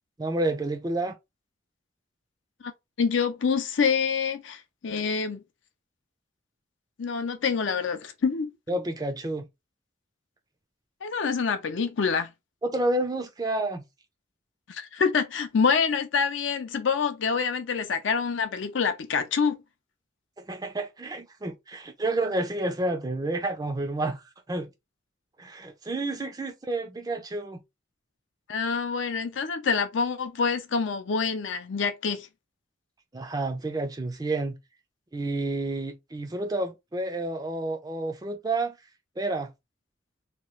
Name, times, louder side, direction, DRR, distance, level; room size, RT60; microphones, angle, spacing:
voice 1, 0.2-1.2 8.7-9.5 12.6-13.8 20.4-24.7 25.4-27.6 33.1-34.5 35.1-38.8 39.2-39.5, right 2 dB, 20° right, 0.4 m, -30 dB
voice 2, 3.0-5.4 7.0-8.5 11.0-12.3 14.7-19.6 28.5-32.3, left 5 dB, 65° left, 0.5 m, -26 dB
2.9 x 2.3 x 3.1 m
head